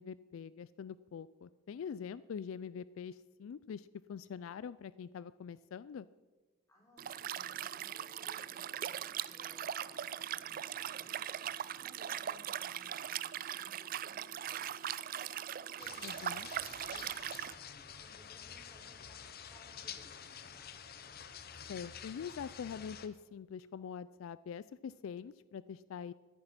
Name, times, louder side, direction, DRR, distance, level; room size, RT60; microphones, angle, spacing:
voice 1, 0.0-6.1 16.0-16.5 21.7-26.1, left 7 dB, 75° left, 17 dB, 0.3 m, -44 dB
voice 2, 6.7-11.3 11.8-14.8 15.6-20.8, left 1 dB, 15° left, -2 dB, 4.2 m, -63 dB
Liquid, 7.0-17.5, right 10 dB, 40° right, 0.3 m, -40 dB
sound 1, 15.8-23.1, left 8 dB, 45° left, 0.8 m, -49 dB
14.0 x 10.5 x 5.9 m, 1.3 s
head